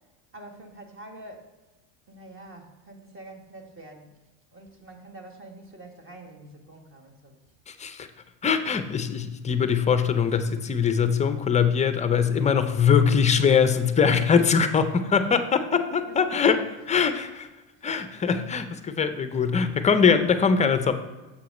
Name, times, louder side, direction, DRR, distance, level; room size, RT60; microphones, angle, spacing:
voice 1, 0.3-1.5 2.1-4.1 4.5-7.4 14.9-16.2 17.7-17.9, right 2 dB, 30° right, 4 dB, 1.4 m, -46 dB
voice 2, 7.7-8.1 8.4-17.5 17.8-20.9, left 6 dB, 20° left, 10 dB, 0.4 m, -22 dB
7.2 x 4.6 x 5.2 m, 1.2 s
supercardioid pair, 100°, 42 cm